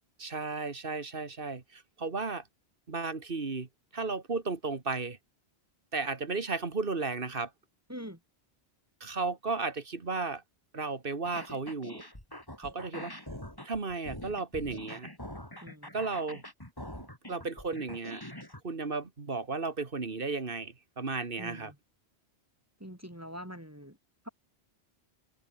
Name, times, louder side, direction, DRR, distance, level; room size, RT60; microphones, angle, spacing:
voice 1, 0.2-2.4 2.9-5.2 5.9-7.5 9.0-10.4 10.7-12.0 12.6-13.1 13.6-15.1 15.9-16.4 17.0-18.2 18.6-21.7, right 4 dB, 55° right, 2.1 m, -34 dB
voice 2, 7.9-8.2 15.6-15.9 21.4-21.8 22.8-24.0 24.2-24.3, equal, 15° right, 3.5 m, -44 dB
sound 1, 11.2-18.6, left 1 dB, 20° left, 5.5 m, -44 dB
omnidirectional pair, 1.1 m